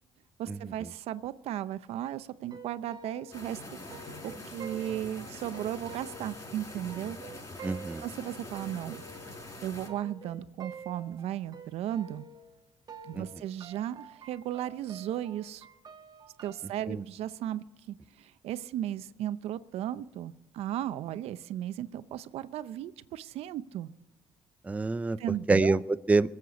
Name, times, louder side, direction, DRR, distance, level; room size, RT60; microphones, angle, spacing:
voice 1, 0.4-3.6 3.9-7.2 8.0-9.0 9.6-12.2 13.0-15.7 16.4-23.9 25.2-25.8, right 11 dB, 80° right, 14 dB, 0.7 m, -36 dB
sound 1, 2.4-12.6 12.9-16.7, right 5 dB, 40° right, 1.3 m, -49 dB
sound 2, 3.3-9.9, left 2 dB, 30° left, 5.7 m, -44 dB
voice 2, 7.6-8.0 13.1-13.2 16.9-17.0 24.6-25.2 25.5-26.4, right 3 dB, 15° right, 14 dB, 0.4 m, -26 dB
22.0 x 8.1 x 7.0 m, 1.0 s
cardioid pair, 95°, 10 cm